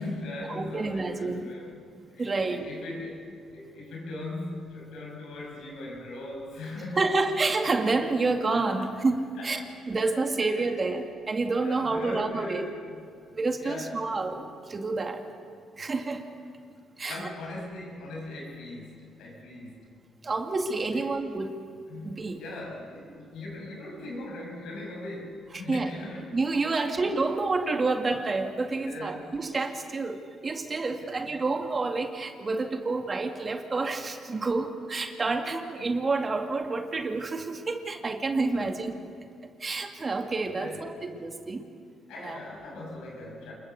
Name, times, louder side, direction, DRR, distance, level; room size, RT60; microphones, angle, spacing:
voice 1, 0.0-1.8 2.1-7.1 8.8-9.1 9.4-11.1 11.5-14.2 17.0-19.9 20.9-21.2 21.9-26.3 26.7-27.1 27.4-27.5 28.7-29.3 30.9-31.3 40.5-40.9 42.1-43.5, left 2 dB, 85° left, 0 dB, 6.4 m, -40 dB
voice 2, 0.6-1.5 2.2-2.7 7.0-9.6 9.9-12.7 13.3-15.2 15.8-16.2 17.0-17.2 20.2-21.6 22.0-22.4 25.7-25.9 26.3-38.9 39.6-41.6 42.2-42.4, right 3 dB, 35° right, 5 dB, 2.2 m, -29 dB
27.5 x 21.5 x 7.0 m, 2.4 s
cardioid pair, 90°, 0 cm